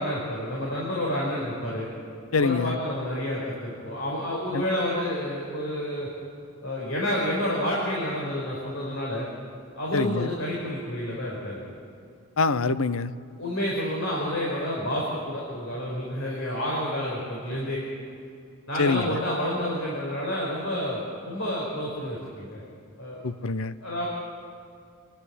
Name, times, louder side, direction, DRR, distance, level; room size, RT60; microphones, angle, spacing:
voice 1, 0.0-1.9 2.3-6.1 6.6-9.3 9.8-11.6 13.4-17.8 18.7-22.6 23.0-23.2 23.8-24.1, left 1 dB, 70° left, -4 dB, 5.1 m, -29 dB
voice 2, 2.3-2.8 4.5-4.6 9.9-10.3 12.4-13.1 18.8-19.1 23.2-23.7, left 4 dB, 90° left, 14 dB, 0.8 m, -24 dB
29.5 x 11.5 x 9.9 m, 2.4 s
head